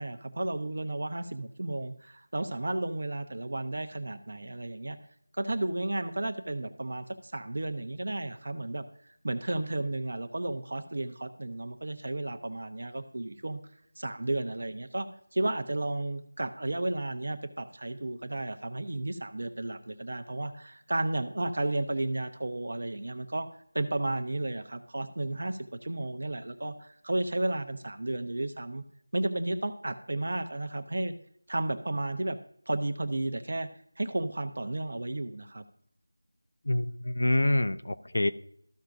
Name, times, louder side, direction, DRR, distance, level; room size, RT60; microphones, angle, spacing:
voice 1, 0.0-5.0 5.4-8.8 9.2-13.6 14.0-15.1 15.3-23.5 23.7-28.8 29.1-31.1 31.5-32.4 32.7-33.7 34.0-35.6, right 2 dB, 50° right, 9 dB, 0.9 m, -33 dB
voice 2, 36.7-38.3, left 1 dB, 55° left, 10 dB, 0.6 m, -26 dB
14.5 x 5.9 x 2.6 m, 0.65 s
figure-of-eight pair, 175°, 0 cm